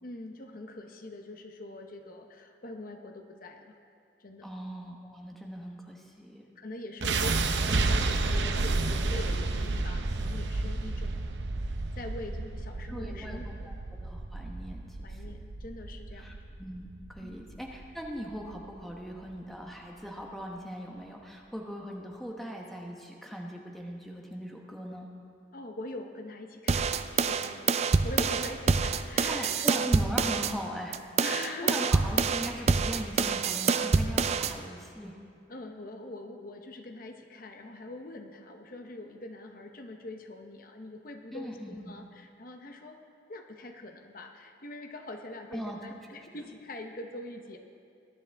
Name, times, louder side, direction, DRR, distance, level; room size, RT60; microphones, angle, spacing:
voice 1, 0.0-3.8 4.2-4.5 6.6-11.3 12.0-13.8 15.0-16.4 17.2-17.4 25.5-27.8 28.0-29.7 31.2-31.8 35.5-43.0 43.3-47.6, left 2 dB, 50° left, 4 dB, 0.9 m, -43 dB
voice 2, 4.4-6.4 12.9-13.8 14.0-15.3 16.1-25.1 29.1-31.0 31.3-35.2 41.3-42.0 45.5-45.8, equal, ahead, -1 dB, 1.0 m, -40 dB
sound 1, 7.0-19.1, right 3 dB, 70° right, 0.7 m, -31 dB
sound 2, 26.7-30.5 30.9-34.5, right 4 dB, 35° right, 0.4 m, -26 dB
20.5 x 10.5 x 3.5 m, 2.4 s
head